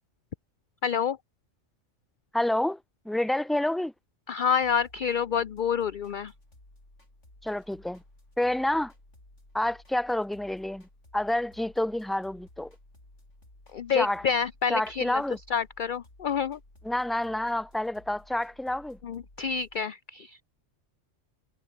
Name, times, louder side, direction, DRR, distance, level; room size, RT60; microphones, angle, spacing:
voice 1, 0.8-1.2 4.3-6.3 13.7-15.2 15.5-16.6 19.0-20.4, left 7 dB, 50° left, 0.7 m, -28 dB
voice 2, 2.3-2.8 3.0-3.9 7.4-8.0 8.4-8.9 9.5-10.9 11.1-12.7 13.9-14.2 14.7-15.4 16.8-19.0, left 1 dB, ahead, 1.3 m, -28 dB
sound 1, 4.6-19.8, left 1 dB, 70° left, 7.8 m, -56 dB
omnidirectional pair, 1.3 m